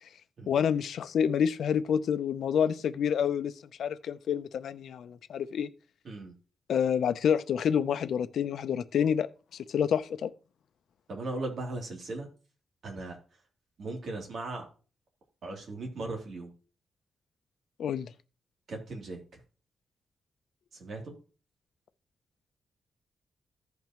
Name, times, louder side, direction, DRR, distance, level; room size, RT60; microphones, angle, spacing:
voice 1, 0.5-3.5 3.8-5.7 6.7-9.3 9.7-10.3 17.8-18.1, left 8 dB, 75° left, 0.6 m, -28 dB
voice 2, 11.1-12.3 12.8-13.2 13.8-14.6 15.4-16.5 18.7-19.2 20.8-21.1, right 2 dB, 55° right, 3.0 m, -37 dB
15.5 x 5.3 x 3.0 m
wide cardioid pair, 145°, 0 cm